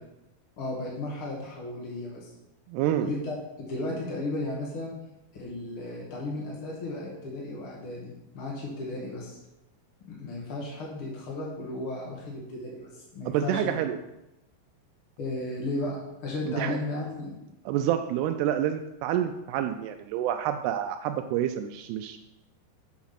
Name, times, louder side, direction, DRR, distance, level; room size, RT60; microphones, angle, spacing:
voice 1, 0.6-2.3 3.0-4.9 5.3-9.4 10.1-13.8 15.2-17.4, left 2 dB, 65° left, -3 dB, 1.3 m, -34 dB
voice 2, 2.7-3.1 13.3-14.0 16.5-16.8 17.7-22.2, right 11 dB, 85° right, 7 dB, 2.5 m, -28 dB
7.3 x 5.9 x 5.7 m, 0.90 s
omnidirectional pair, 4.8 m